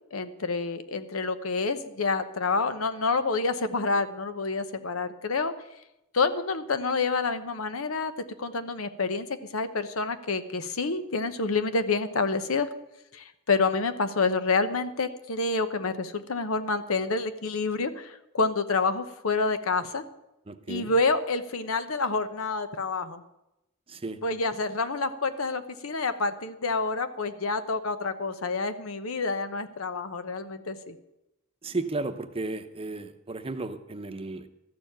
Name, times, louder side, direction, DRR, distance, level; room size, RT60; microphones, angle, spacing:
voice 1, 0.1-5.5 6.1-8.1 8.4-9.3 9.5-12.7 13.1-20.0 20.7-23.2 24.2-31.0, left 3 dB, 75° left, 11 dB, 1.0 m, -28 dB
voice 2, 20.5-20.9 23.9-24.2 31.6-34.5, right 2 dB, 25° right, 9 dB, 0.8 m, -34 dB
13.0 x 7.0 x 9.0 m, 0.89 s
head